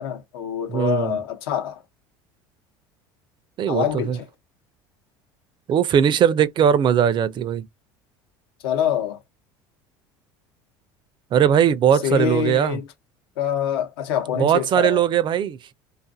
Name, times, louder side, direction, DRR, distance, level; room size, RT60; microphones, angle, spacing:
voice 1, 0.0-1.8 3.7-4.2 8.6-9.2 12.0-12.9 13.4-15.0, left 9 dB, 85° left, 0.8 m, -25 dB
voice 2, 0.7-1.2 3.6-4.2 5.7-7.7 11.3-12.8 14.4-15.6, right 9 dB, 40° right, 0.4 m, -19 dB
2.5 x 2.4 x 2.6 m
supercardioid pair, 90°, 12 cm